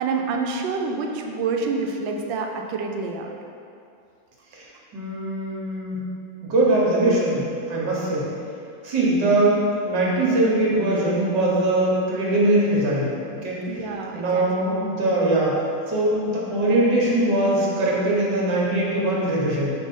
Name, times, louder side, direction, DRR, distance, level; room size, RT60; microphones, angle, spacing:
voice 1, 0.0-3.3 13.7-14.7, right 4 dB, 85° right, 2 dB, 1.3 m, -27 dB
voice 2, 4.9-6.0 6.4-8.3 8.8-13.1 13.4-13.6 14.1-15.6 15.9-19.7, right 1 dB, 70° right, -5 dB, 1.7 m, -21 dB
5.4 x 3.2 x 5.3 m, 2.5 s
omnidirectional pair, 2.0 m